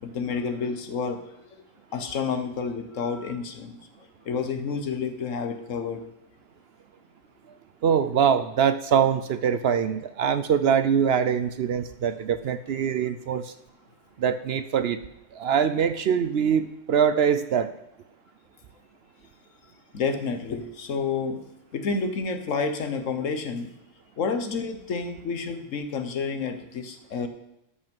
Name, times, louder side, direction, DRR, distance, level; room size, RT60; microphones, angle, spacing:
voice 1, 0.0-1.2 1.9-3.8 4.2-6.0 19.9-21.4 21.7-23.7 24.2-27.3, left 5 dB, 80° left, 8 dB, 1.4 m, -29 dB
voice 2, 7.8-13.5 14.2-15.0 15.3-17.7, right 7 dB, 60° right, 12 dB, 0.7 m, -23 dB
13.0 x 5.5 x 5.4 m, 0.85 s
omnidirectional pair, 1.3 m